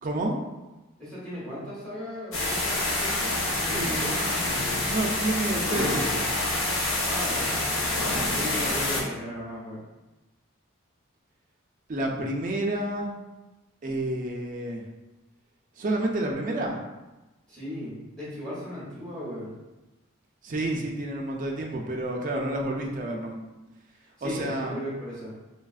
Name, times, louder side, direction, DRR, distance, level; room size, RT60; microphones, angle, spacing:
voice 1, 0.0-0.4 3.7-4.1 4.9-6.3 11.9-13.1 13.8-14.8 15.8-16.8 20.4-23.4 24.2-24.8, right 1 dB, 40° right, 1 dB, 0.3 m, -29 dB
voice 2, 1.0-4.5 7.0-7.6 8.2-9.8 17.5-19.5 24.2-25.3, equal, 5° left, -9 dB, 1.0 m, -37 dB
sound 1, 2.3-9.0, left 2 dB, 75° left, 0.7 m, -27 dB
3.3 x 2.3 x 2.3 m, 1.1 s
head